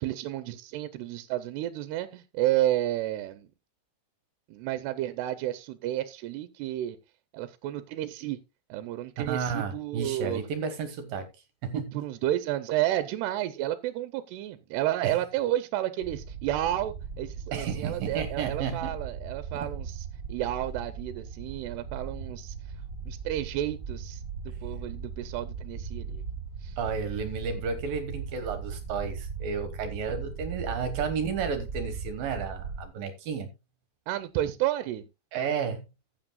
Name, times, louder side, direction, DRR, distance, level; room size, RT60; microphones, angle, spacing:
voice 1, 0.0-3.5 4.5-7.0 7.3-8.4 8.7-10.4 11.9-22.6 23.1-24.2 24.6-26.2 26.6-26.8 34.1-35.0, right 13 dB, 85° right, 2.8 m, -31 dB
voice 2, 9.3-11.3 11.6-12.0 15.0-15.2 17.5-18.9 19.5-19.7 26.8-33.5 35.3-35.8, right 6 dB, 65° right, 2.8 m, -32 dB
sound 1, 16.0-32.8, right 6 dB, 35° right, 2.0 m, -38 dB
15.0 x 8.7 x 2.4 m
omnidirectional pair, 4.8 m